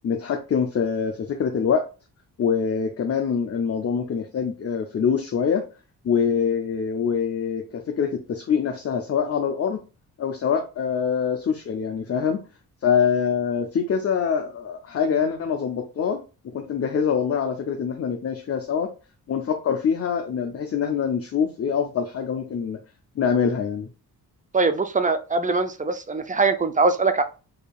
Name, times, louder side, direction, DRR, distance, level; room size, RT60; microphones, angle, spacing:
voice 1, 0.0-1.9 2.4-5.6 6.0-9.8 10.2-12.4 12.8-18.9 19.3-22.8 23.2-23.9, left 6 dB, 40° left, 4 dB, 0.6 m, -24 dB
voice 2, 24.5-27.2, right 3 dB, 20° right, 9 dB, 0.4 m, -22 dB
4.9 x 2.7 x 2.3 m, 0.33 s
cardioid pair, 90°, 38 cm